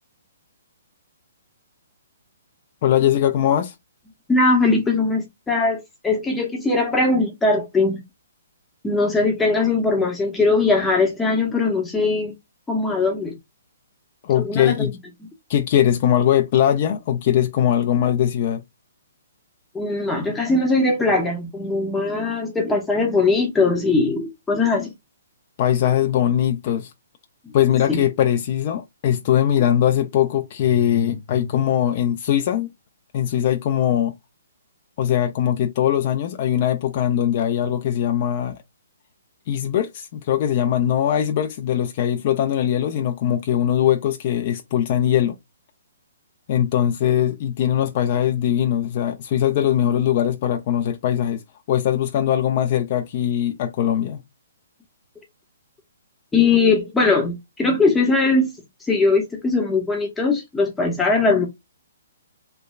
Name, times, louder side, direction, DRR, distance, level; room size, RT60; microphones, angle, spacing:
voice 1, 2.8-3.7 14.2-14.9 15.5-18.6 25.6-26.9 27.5-32.7 33.1-34.1 35.0-38.6 39.5-45.4 46.5-51.4 51.7-54.2, left 10 dB, 45° left, 0.3 m, -21 dB
voice 2, 4.3-8.0 8.8-12.3 12.7-13.3 14.4-14.9 19.7-24.9 27.9-28.0 56.3-58.5 58.8-61.5, left 3 dB, 10° left, 0.6 m, -20 dB
3.2 x 2.2 x 2.2 m
figure-of-eight pair, 130°, 0 cm